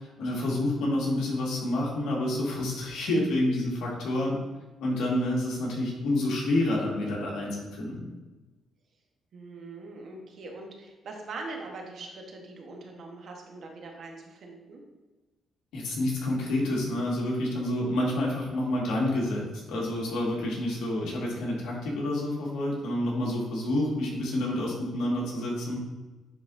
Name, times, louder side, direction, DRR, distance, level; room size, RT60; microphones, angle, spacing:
voice 1, 0.2-4.4 4.8-8.1 15.7-25.8, left 1 dB, 85° left, -3 dB, 1.8 m, -28 dB
voice 2, 9.3-14.8, right 3 dB, 60° right, 1 dB, 1.2 m, -42 dB
9.4 x 4.0 x 2.6 m, 1.1 s
cardioid pair, 90°, 0 cm